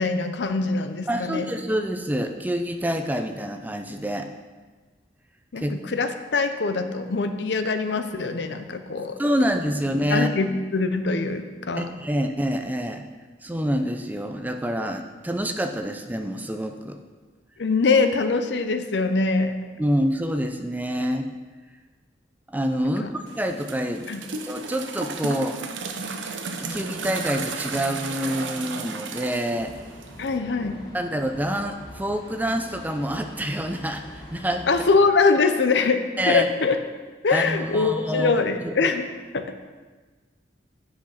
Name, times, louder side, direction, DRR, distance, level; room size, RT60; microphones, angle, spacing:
voice 1, 0.0-1.5 5.5-9.2 10.1-11.9 17.6-19.5 22.8-23.1 24.1-24.2 30.2-30.8 34.7-36.8 37.2-39.1 39.3-39.5, left 4 dB, 65° left, 9 dB, 0.7 m, -23 dB
voice 2, 1.1-4.3 5.6-5.7 9.2-10.3 11.8-13.0 13.4-17.0 19.8-21.3 22.5-23.0 23.4-25.6 26.6-29.9 30.9-34.7 36.2-36.5 37.3-38.7, equal, 10° right, 6 dB, 0.4 m, -27 dB
sound 1, 23.3-30.4, right 4 dB, 80° right, 0.8 m, -34 dB
sound 2, 29.5-35.0, left 1 dB, 20° left, 1.5 m, -44 dB
8.9 x 6.1 x 5.7 m, 1.4 s
head